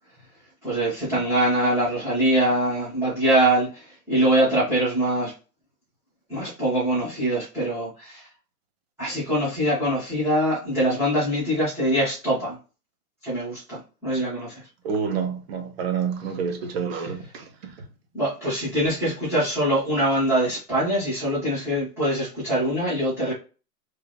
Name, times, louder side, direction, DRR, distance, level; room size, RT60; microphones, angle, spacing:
voice 1, 0.6-5.3 6.3-8.3 9.0-12.6 13.2-14.6 17.0-17.1 18.1-23.3, right 1 dB, 5° right, 1.6 m, -23 dB
voice 2, 14.8-17.4, right 6 dB, 40° right, 0.9 m, -28 dB
3.6 x 2.7 x 3.4 m
hypercardioid pair, 160°, 47 cm